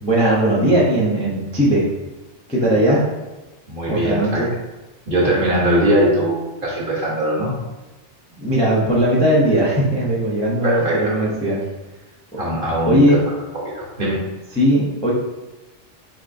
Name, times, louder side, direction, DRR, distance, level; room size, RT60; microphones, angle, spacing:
voice 1, 0.0-1.8 2.5-3.0 3.9-4.5 8.4-11.6 12.9-13.2 14.5-15.1, right 1 dB, 5° left, -6 dB, 0.5 m, -18 dB
voice 2, 3.7-4.4 5.1-7.6 10.6-11.2 12.4-13.2 13.6-14.2, right 1 dB, 50° right, -4 dB, 1.1 m, -20 dB
4.4 x 2.9 x 2.6 m, 1.1 s
omnidirectional pair, 1.3 m